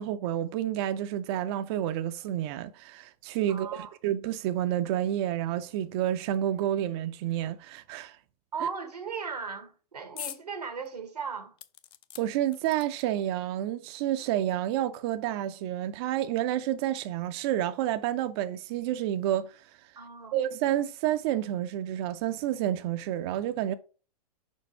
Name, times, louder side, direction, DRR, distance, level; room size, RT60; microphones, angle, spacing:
voice 1, 0.0-8.2 12.2-19.7 20.3-23.7, right 12 dB, 40° right, 0.4 m, -29 dB
voice 2, 3.5-3.9 8.5-11.5 20.0-20.4, right 6 dB, 90° right, 1.1 m, -37 dB
sound 1, 10.2-10.5 10.9-11.0 11.6-13.2 14.1-14.2 14.5-14.6, left 12 dB, 25° left, 0.4 m, -43 dB
5.1 x 4.4 x 4.2 m
hypercardioid pair, 110°, 20 cm